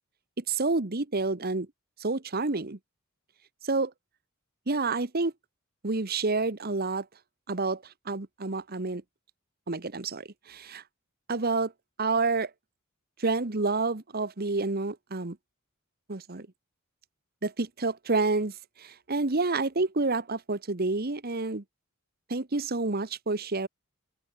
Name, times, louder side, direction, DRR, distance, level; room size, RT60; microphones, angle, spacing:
voice 1, 0.4-1.7 2.0-2.8 3.6-3.9 4.7-5.3 5.8-7.1 7.5-9.0 9.7-10.8 11.3-11.7 12.0-12.5 13.2-15.4 16.1-16.5 17.4-21.6 22.3-23.7, right 3 dB, 45° right, 1.3 m, -29 dB
open air
head